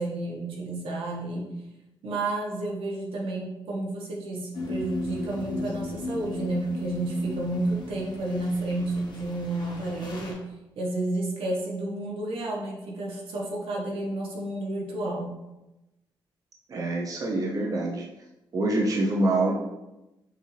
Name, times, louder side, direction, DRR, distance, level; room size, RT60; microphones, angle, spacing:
voice 1, 0.0-1.5 2.0-10.4 10.8-15.3, right 2 dB, 90° right, -2 dB, 1.2 m, -31 dB
sound 1, 4.5-10.3, left 2 dB, 60° left, 1.0 m, -36 dB
voice 2, 16.7-18.1 18.5-19.5, right 2 dB, 40° right, -1 dB, 0.6 m, -25 dB
6.4 x 2.5 x 3.2 m, 0.96 s
cardioid pair, 110°, 9 cm